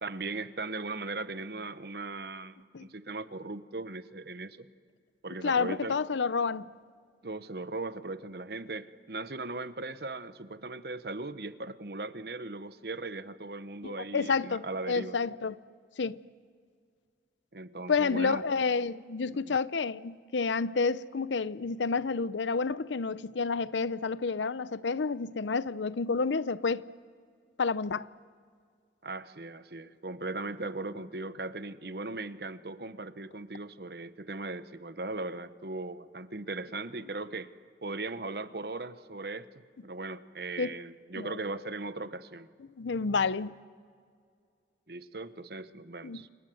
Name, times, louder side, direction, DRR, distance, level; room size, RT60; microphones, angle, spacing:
voice 1, 0.0-4.7 5.2-6.0 7.2-15.2 17.5-18.4 19.3-19.6 29.0-37.5 37.8-39.5 39.8-42.5 44.9-46.3, right 3 dB, 60° right, 1.0 m, -38 dB
voice 2, 5.4-6.7 13.8-15.6 16.0-16.2 17.9-26.8 27.6-28.1 40.6-40.7 41.2-41.4 42.8-43.5 46.0-46.2, left 4 dB, 90° left, 0.6 m, -29 dB
29.0 x 26.0 x 7.8 m
head